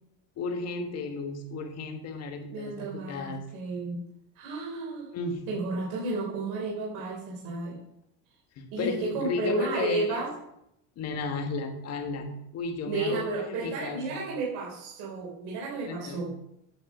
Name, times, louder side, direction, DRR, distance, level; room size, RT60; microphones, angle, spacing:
voice 1, 0.4-3.4 5.1-5.5 8.6-10.2 11.0-12.3 12.5-14.2 15.9-16.3, left 4 dB, 35° left, 4 dB, 1.6 m, -34 dB
voice 2, 2.5-4.0 4.4-5.1 5.5-7.8 8.7-10.3 12.9-16.3, right 3 dB, 60° right, -3 dB, 3.4 m, -32 dB
8.7 x 6.1 x 7.3 m, 0.79 s
cardioid pair, 160°, 42 cm